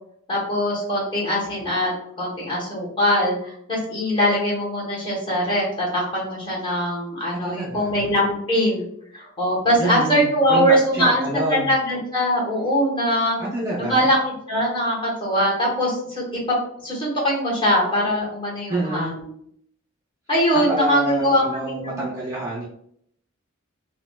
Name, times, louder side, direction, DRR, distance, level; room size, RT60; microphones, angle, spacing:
voice 1, 0.3-1.9 2.2-8.8 9.1-13.3 13.8-16.6 16.8-19.3 20.3-22.0, equal, 25° left, -5 dB, 1.1 m, -22 dB
voice 2, 7.4-7.9 9.8-11.7 13.4-14.1 18.7-19.1 20.7-22.7, right 1 dB, 15° right, -5 dB, 0.4 m, -27 dB
4.0 x 2.0 x 2.2 m, 0.69 s
head